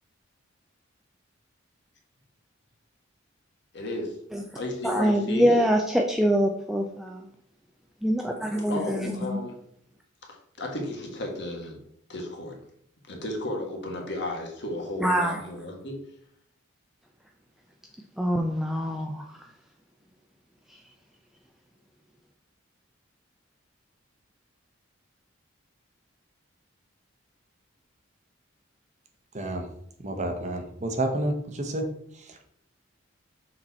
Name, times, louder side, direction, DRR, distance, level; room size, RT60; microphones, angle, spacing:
voice 1, 3.7-4.1 4.6-5.7 8.7-9.5 10.6-11.8 12.1-12.6 13.1-16.0, left 1 dB, 60° left, 1 dB, 1.6 m, -33 dB
voice 2, 4.8-7.3 8.0-9.4 15.0-15.4 18.2-19.3, equal, ahead, 2 dB, 0.4 m, -24 dB
voice 3, 29.3-29.7 30.0-32.5, right 1 dB, 35° right, 4 dB, 0.9 m, -30 dB
6.5 x 4.4 x 4.2 m, 0.69 s
head